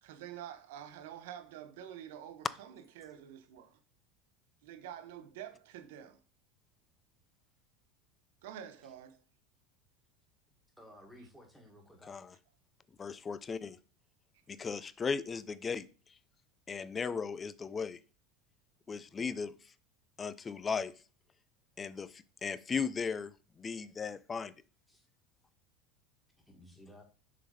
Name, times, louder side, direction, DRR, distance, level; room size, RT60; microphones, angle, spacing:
voice 1, 0.0-3.8 4.6-6.2 8.4-9.2, right 10 dB, 80° right, 0.9 m, -48 dB
voice 2, 10.8-12.2 24.9-25.1 26.5-27.0, equal, ahead, 1.7 m, -55 dB
voice 3, 13.0-13.8 14.5-15.9 16.7-18.0 18.9-19.5 20.2-20.9 21.8-23.3 23.6-24.5, left 5 dB, 20° left, 0.4 m, -36 dB
6.7 x 3.9 x 4.9 m
supercardioid pair, 145°, 0 cm